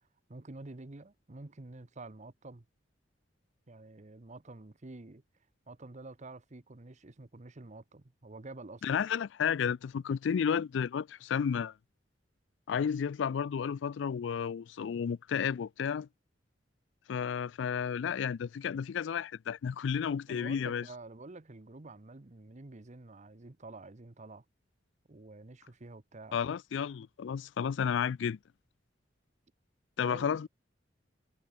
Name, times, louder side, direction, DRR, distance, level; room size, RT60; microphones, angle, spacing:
voice 1, 0.0-2.7 3.7-5.2 5.7-9.0 20.3-24.4 25.1-26.4 30.0-30.5, right 2 dB, 40° right, 1.0 m, -49 dB
voice 2, 8.8-11.7 12.7-16.1 17.1-20.8 26.3-28.4 30.0-30.5, left 7 dB, 75° left, 0.4 m, -32 dB
head